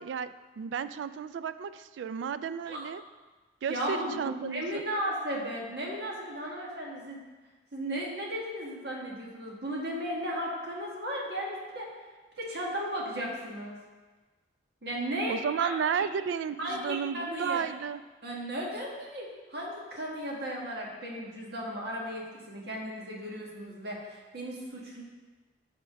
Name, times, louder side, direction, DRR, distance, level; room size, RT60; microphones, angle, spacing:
voice 1, 0.0-3.0 3.6-4.8 15.3-18.0, right 7 dB, 80° right, 13 dB, 0.3 m, -33 dB
voice 2, 3.7-7.2 7.7-11.9 12.4-13.8 14.8-16.0 16.6-17.6 18.2-25.0, equal, 60° right, -3 dB, 1.5 m, -35 dB
7.7 x 3.7 x 5.2 m, 1.3 s
head